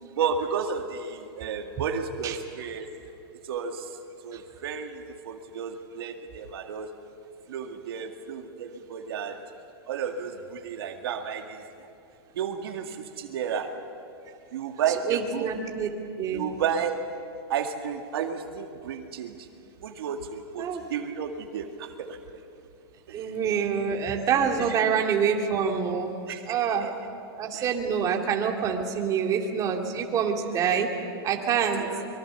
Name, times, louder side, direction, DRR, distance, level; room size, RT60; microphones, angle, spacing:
voice 1, 0.2-2.9 3.4-4.0 4.2-6.9 7.5-9.4 9.9-11.9 12.3-13.8 14.5-15.5 16.3-17.1 17.5-19.5 19.8-22.2 23.1-23.3 24.6-24.8 26.3-26.9 27.5-27.7 31.7-32.1, right 7 dB, 75° right, 4 dB, 2.0 m, -32 dB
voice 2, 15.1-15.9 16.2-16.4 20.6-20.8 23.1-26.1 26.5-26.9 27.4-30.9 31.2-31.8, right 7 dB, 25° right, 1 dB, 2.4 m, -26 dB
24.5 x 23.0 x 7.0 m, 2.6 s
hypercardioid pair, 145°, 13 cm